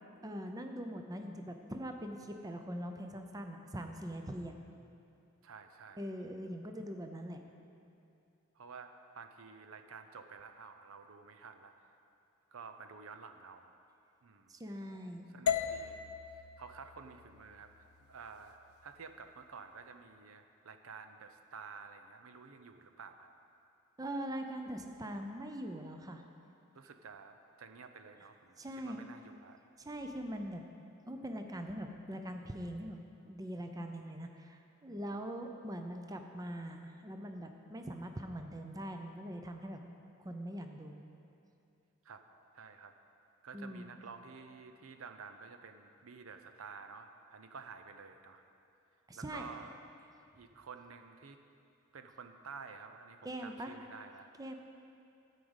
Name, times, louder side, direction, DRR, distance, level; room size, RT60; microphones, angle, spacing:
voice 1, 0.2-4.6 6.0-7.4 14.5-15.3 24.0-26.2 28.6-29.0 29.8-30.7 31.1-39.8 40.2-41.0 43.5-43.9 49.1-49.7 53.2-53.7 54.4-54.5, equal, 15° right, 5 dB, 0.6 m, -42 dB
voice 2, 5.4-6.0 8.6-11.7 12.5-13.7 14.2-14.5 15.3-18.6 18.8-23.3 26.7-29.6 42.0-42.2 42.5-42.9 43.4-48.5 49.2-49.8 50.3-51.4 51.9-54.3, right 5 dB, 70° right, 7 dB, 0.6 m, -51 dB
sound 1, 15.5-19.6, left 7 dB, 85° left, 0.5 m, -39 dB
13.0 x 5.0 x 8.0 m, 2.6 s
head